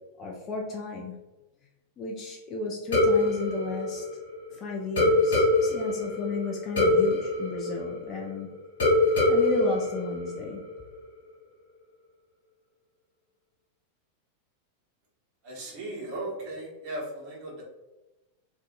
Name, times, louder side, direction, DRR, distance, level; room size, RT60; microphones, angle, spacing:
voice 1, 0.2-1.1 2.0-4.1 4.5-8.5 9.3-10.6, left 2 dB, 30° left, -1 dB, 0.4 m, -33 dB
sound 1, 2.9-4.5 5.0-8.4 8.8-10.8, left 2 dB, 65° left, 0.9 m, -24 dB
voice 2, 15.4-17.6, right 1 dB, 40° right, -4 dB, 0.9 m, -37 dB
2.6 x 2.2 x 2.5 m, 1.0 s
figure-of-eight pair, 90°, 0 cm